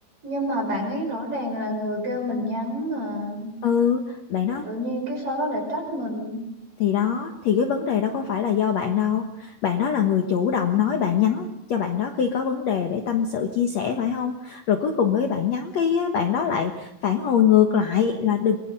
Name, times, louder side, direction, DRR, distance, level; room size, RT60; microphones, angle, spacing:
voice 1, 0.2-3.5 4.6-6.4, equal, 35° right, 2 dB, 6.3 m, -28 dB
voice 2, 3.6-4.6 6.8-18.6, left 8 dB, 60° left, 4 dB, 2.0 m, -23 dB
25.5 x 22.0 x 5.5 m, 0.83 s
omnidirectional pair, 4.6 m